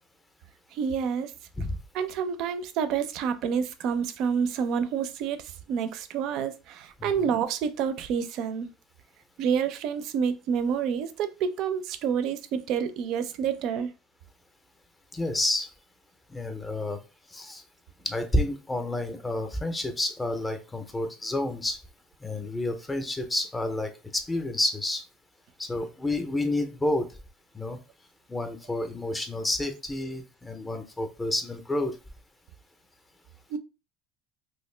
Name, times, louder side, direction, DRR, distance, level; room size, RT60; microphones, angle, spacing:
voice 1, 0.7-1.3 1.9-5.4 5.7-8.7 9.4-13.9 33.5-33.6, right 7 dB, 55° right, 0.4 m, -28 dB
voice 2, 7.0-7.3 15.1-15.7 16.3-17.0 17.3-17.6 18.0-21.8 22.2-25.0 25.6-27.1 27.5-27.8 28.3-31.9, left 1 dB, 10° left, 0.5 m, -29 dB
2.9 x 2.5 x 3.1 m
cardioid pair, 140°, 0 cm